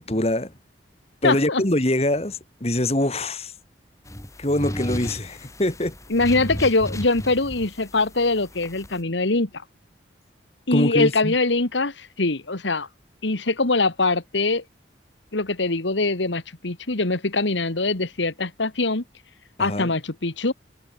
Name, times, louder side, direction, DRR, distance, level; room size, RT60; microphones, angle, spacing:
voice 1, 0.1-0.5 1.2-3.5 4.4-5.9 10.7-11.3 19.6-19.9, left 1 dB, 35° left, 2.3 m, -24 dB
voice 2, 1.2-1.6 6.1-9.5 10.7-12.9 13.2-14.6 15.3-19.0 19.6-20.5, left 3 dB, 80° left, 1.9 m, -23 dB
sound 1, 4.0-9.0, equal, 15° left, 4.3 m, -35 dB
head